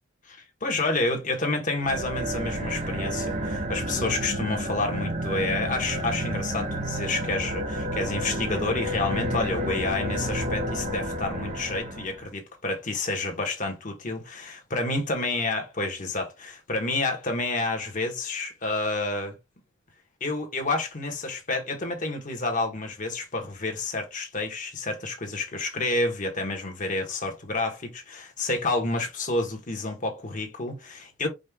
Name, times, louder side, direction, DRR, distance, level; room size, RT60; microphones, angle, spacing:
voice 1, 0.2-19.3 20.2-31.3, left 2 dB, 40° left, 1.3 m, -29 dB
sound 1, 1.8-12.3, right 1 dB, 35° right, 1.0 m, -30 dB
5.2 x 2.5 x 3.6 m
head